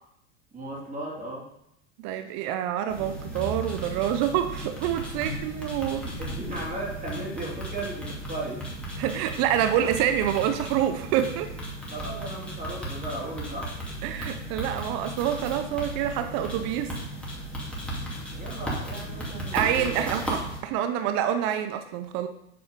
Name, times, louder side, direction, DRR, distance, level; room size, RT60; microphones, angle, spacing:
voice 1, 0.5-1.5 5.2-5.4 5.6-5.7 6.0-8.6 11.9-13.7 18.3-20.2, right 1 dB, 25° right, -3 dB, 2.6 m, -36 dB
voice 2, 2.0-6.1 9.0-11.5 14.0-16.9 19.5-22.3, right 10 dB, 50° right, 8 dB, 0.7 m, -27 dB
sound 1, 2.9-20.6, right 1 dB, 5° left, 2.1 m, -35 dB
7.6 x 4.3 x 5.1 m, 0.77 s
hypercardioid pair, 110°, 34 cm